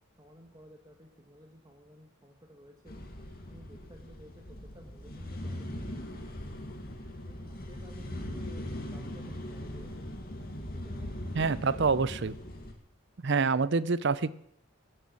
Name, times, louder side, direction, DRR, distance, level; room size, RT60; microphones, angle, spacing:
voice 1, 0.2-2.9 3.5-6.3 7.2-10.0 10.7-12.0, equal, 20° right, 2 dB, 1.5 m, -53 dB
sound 1, 2.9-12.7, left 1 dB, 45° left, 2.0 m, -40 dB
voice 2, 11.3-12.3 13.2-14.3, right 4 dB, 55° right, 18 dB, 0.6 m, -26 dB
17.0 x 7.8 x 7.2 m, 0.73 s
head